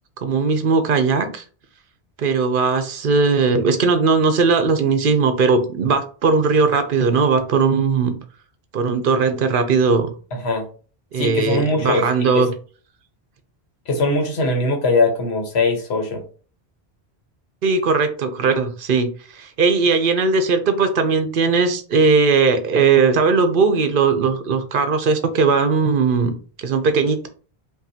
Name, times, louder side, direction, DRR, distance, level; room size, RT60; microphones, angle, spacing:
voice 1, 0.2-1.4 2.2-8.2 8.7-10.1 11.1-12.5 17.6-19.1 19.3-27.3, right 4 dB, 60° right, 8 dB, 0.8 m, -18 dB
voice 2, 11.2-12.1 12.3-12.4 13.9-16.2, left 2 dB, 90° left, 3 dB, 1.3 m, -20 dB
5.3 x 2.7 x 2.7 m, 0.39 s
omnidirectional pair, 1.0 m